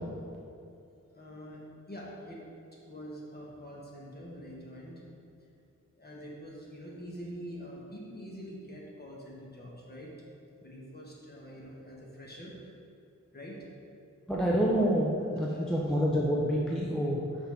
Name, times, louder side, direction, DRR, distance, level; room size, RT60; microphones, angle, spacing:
voice 1, 1.1-1.6 1.9-2.4 2.7-5.0 5.4-5.5 5.9-10.3 10.6-12.7 13.3-13.7 15.1-16.0, equal, 30° left, -4 dB, 1.3 m, -45 dB
voice 2, 14.3-17.2, equal, ahead, -4 dB, 0.6 m, -27 dB
5.7 x 3.6 x 5.7 m, 2.5 s
wide cardioid pair, 100°, 32 cm